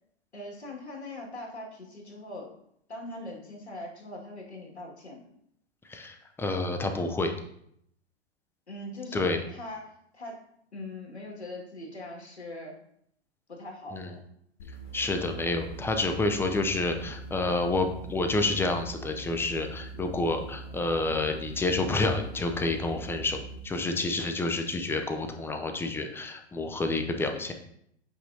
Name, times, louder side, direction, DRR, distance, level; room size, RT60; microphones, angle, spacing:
voice 1, 0.3-2.5 2.9-5.2 8.7-10.4 10.7-12.7 13.5-14.1, left 1 dB, 85° left, -2 dB, 2.2 m, -41 dB
voice 2, 5.9-7.3 9.1-9.4 13.9-14.1 14.9-27.5, left 2 dB, 5° left, 5 dB, 0.6 m, -29 dB
sound 1, 14.6-23.7, right 3 dB, 65° left, 1.7 m, -42 dB
8.4 x 5.5 x 2.8 m, 0.71 s
figure-of-eight pair, 110°, 32 cm